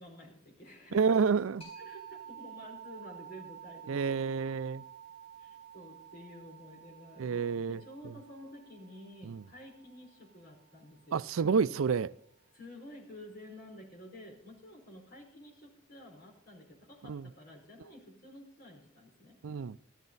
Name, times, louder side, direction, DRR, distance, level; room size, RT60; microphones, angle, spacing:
voice 1, 0.0-1.1 1.8-4.4 5.4-11.3 12.5-19.4, left 1 dB, 50° left, 5.0 m, -51 dB
voice 2, 0.9-1.7 3.9-4.8 7.2-8.1 9.2-9.4 11.1-12.1 17.0-17.3 19.4-19.8, right 5 dB, 90° right, 0.4 m, -29 dB
sound 1, 1.6-11.0, right 9 dB, 30° left, 7.2 m, -51 dB
14.5 x 14.0 x 4.0 m
head